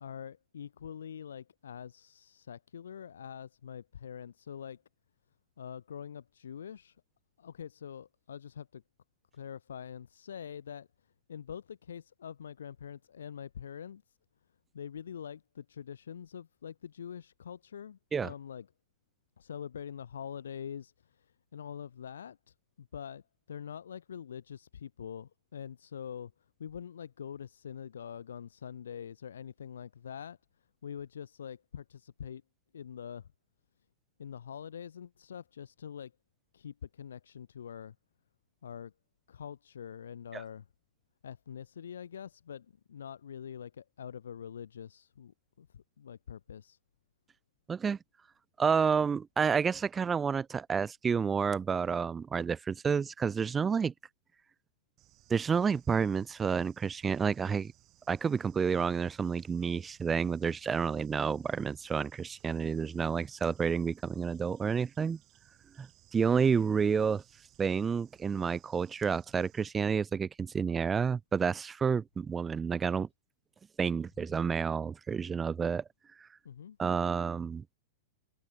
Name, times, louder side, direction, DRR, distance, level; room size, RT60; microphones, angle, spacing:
voice 1, 0.0-4.8 5.6-7.0 7.4-8.8 9.3-10.9 11.3-14.2 14.7-18.7 19.4-26.3 26.6-30.4 30.8-32.4 32.7-33.3 34.2-36.1 36.5-37.9 38.6-38.9 39.3-40.7 41.2-46.8 76.4-76.8, left 8 dB, 70° left, 0.9 m, -44 dB
voice 2, 48.6-53.9 55.3-57.7 58.1-65.2 65.8-67.2 67.6-73.1 73.8-75.8 76.8-77.6, right 6 dB, 20° right, 0.5 m, -30 dB
Bird / Insect, 55.0-69.7, right 16 dB, 35° right, 7.4 m, -64 dB
figure-of-eight pair, 100°, 0 cm